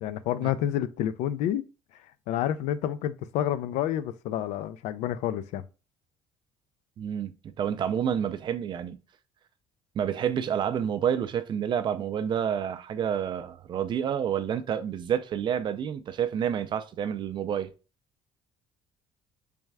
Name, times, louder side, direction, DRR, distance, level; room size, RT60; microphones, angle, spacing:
voice 1, 0.0-1.6 2.3-5.6, left 11 dB, 75° left, 0.4 m, -29 dB
voice 2, 7.0-9.0 9.9-17.7, right 8 dB, 40° right, 0.4 m, -29 dB
3.4 x 3.2 x 3.3 m
cardioid pair, 125°, 12 cm